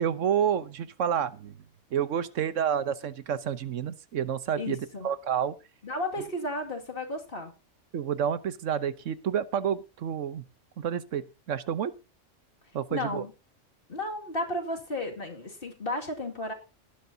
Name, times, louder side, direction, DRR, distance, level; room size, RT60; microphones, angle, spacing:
voice 1, 0.0-1.6 1.9-4.8 5.0-5.5 7.9-10.4 10.8-11.9 12.7-13.2, right 8 dB, 80° right, 14 dB, 1.2 m, -29 dB
voice 2, 4.6-5.1 5.8-7.5 12.9-13.3 13.9-16.5, left 1 dB, 45° left, 2 dB, 2.5 m, -33 dB
19.0 x 10.0 x 2.8 m, 0.28 s
omnidirectional pair, 1.3 m